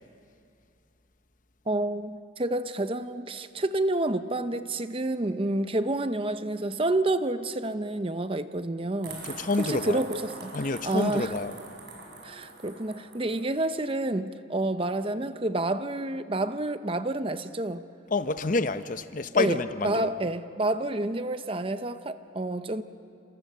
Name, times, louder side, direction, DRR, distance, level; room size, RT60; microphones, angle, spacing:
voice 1, 1.7-9.3 9.6-10.5 10.8-11.3 12.2-17.8 19.4-19.6 19.8-22.8, right 2 dB, 30° right, 0.7 m, -29 dB
sound 1, 9.0-13.4, right 3 dB, 60° right, 6.2 m, -43 dB
voice 2, 9.2-10.1 10.5-11.5 18.1-20.1, left 3 dB, 45° left, 0.8 m, -28 dB
29.5 x 27.0 x 6.7 m
head